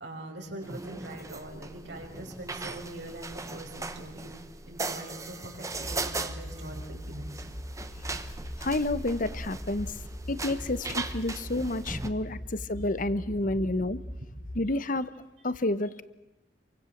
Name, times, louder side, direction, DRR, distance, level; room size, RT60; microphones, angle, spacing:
voice 1, 0.0-4.3 4.7-7.4 10.3-10.6 10.9-11.0 12.2-12.5 13.3-13.7 15.4-15.5, right 1 dB, 75° right, 1 dB, 5.8 m, -43 dB
sound 1, 0.6-12.1, right 3 dB, 20° right, 1.2 m, -39 dB
sound 2, 5.7-14.6, equal, 85° left, 3.6 m, -41 dB
voice 2, 8.6-9.9 10.3-10.8 11.1-14.0 14.5-15.1 15.4-16.0, left 2 dB, 50° left, 15 dB, 1.1 m, -29 dB
28.0 x 24.0 x 7.4 m, 0.97 s
head